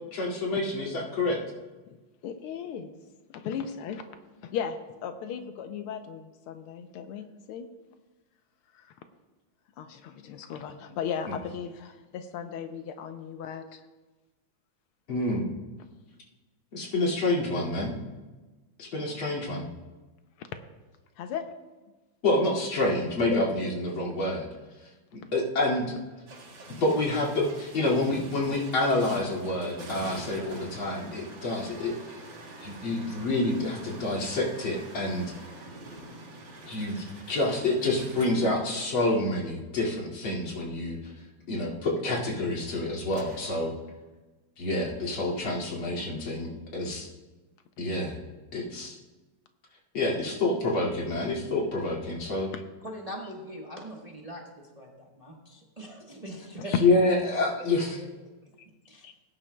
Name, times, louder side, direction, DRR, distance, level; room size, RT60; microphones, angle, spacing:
voice 1, 0.1-1.4 15.1-15.5 16.7-17.9 18.8-19.7 22.2-24.5 25.1-25.9 26.8-32.0 32.6-35.3 36.7-41.1 41.5-43.7 44.6-47.1 47.8-48.2 48.5-49.0 49.9-52.5 56.8-58.0, left 2 dB, 65° left, -3 dB, 3.1 m, -28 dB
voice 2, 2.2-3.0 3.3-4.0 4.4-7.7 8.7-8.9 9.8-13.8 20.4-20.5 21.2-21.5 23.3-23.4 52.5-52.6 59.0-59.1, left 7 dB, 80° left, 7 dB, 1.6 m, -36 dB
sound 1, 26.3-39.3 43.1-43.6, right 2 dB, 50° right, 2.4 m, -45 dB
voice 3, 52.8-56.7 58.0-58.1 58.9-59.1, equal, 25° right, -1 dB, 1.0 m, -42 dB
18.5 x 10.5 x 2.2 m, 1.2 s
omnidirectional pair, 2.4 m